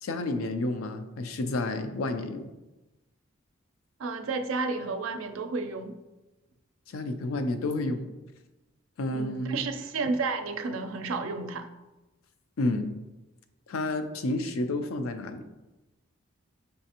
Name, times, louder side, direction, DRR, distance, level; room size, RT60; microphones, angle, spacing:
voice 1, 0.0-2.5 6.9-8.1 9.0-9.6 12.6-12.9 13.7-15.5, left 2 dB, 85° left, 8 dB, 0.4 m, -30 dB
voice 2, 4.0-6.0 9.1-11.7, right 3 dB, 80° right, 7 dB, 0.4 m, -31 dB
5.4 x 3.3 x 2.8 m, 1.1 s
head